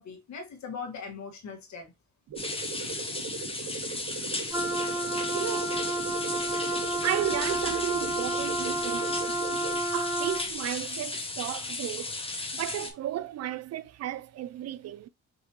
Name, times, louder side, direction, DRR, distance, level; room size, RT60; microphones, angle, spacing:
voice 1, 0.0-1.9 2.8-2.9, left 5 dB, 65° left, 1.9 m, -40 dB
sound 1, 2.3-9.8, right 5 dB, 85° right, 1.0 m, -39 dB
sound 2, 2.4-12.9, left 3 dB, 20° left, 1.0 m, -35 dB
Wind instrument woodwind instrument, 4.5-10.5, right 1 dB, 10° right, 0.9 m, -31 dB
voice 2, 5.3-5.8 7.0-9.3 9.9-12.2 12.5-15.1, right 12 dB, 55° right, 0.4 m, -34 dB
5.4 x 2.9 x 3.0 m
cardioid pair, 90°, 30 cm